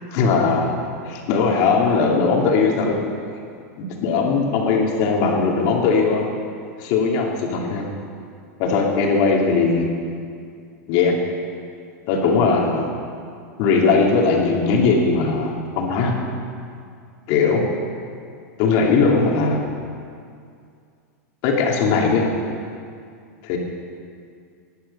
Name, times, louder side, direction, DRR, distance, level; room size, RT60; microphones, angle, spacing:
voice 1, 0.1-0.7 1.0-3.0 3.8-6.2 6.8-7.9 8.6-9.9 10.9-11.2 12.1-12.9 13.6-16.2 17.3-17.6 18.6-19.6 21.4-22.3 23.4-23.6, left 4 dB, 50° left, -1 dB, 2.9 m, -19 dB
18.0 x 10.5 x 5.6 m, 2.3 s
supercardioid pair, 140°, 9 cm